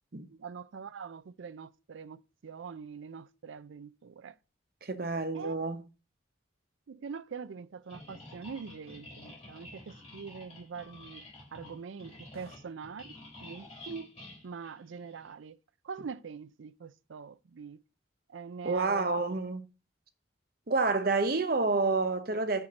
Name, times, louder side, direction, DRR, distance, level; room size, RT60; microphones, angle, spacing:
voice 1, 0.3-4.3 5.3-5.5 6.9-14.1 14.4-15.6 15.8-17.8 18.3-19.4, right 5 dB, 80° right, 0.4 m, -44 dB
voice 2, 4.8-5.8 18.6-19.6 20.7-22.7, right 3 dB, 50° right, 0.8 m, -29 dB
sound 1, 7.9-15.3, left 1 dB, 30° left, 4.3 m, -50 dB
5.7 x 4.5 x 6.4 m
head